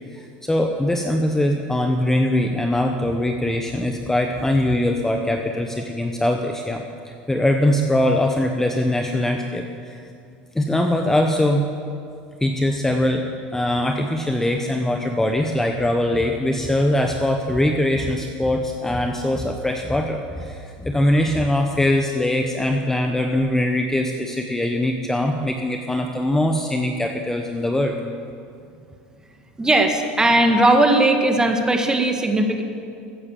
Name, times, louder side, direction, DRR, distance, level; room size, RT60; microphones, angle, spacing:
voice 1, 0.1-10.0 10.5-11.7 12.4-27.9, left 1 dB, 10° left, 4 dB, 1.0 m, -22 dB
voice 2, 29.6-32.6, right 1 dB, 15° right, 5 dB, 1.7 m, -18 dB
14.5 x 9.6 x 7.2 m, 2.4 s
hypercardioid pair, 95°, 5 cm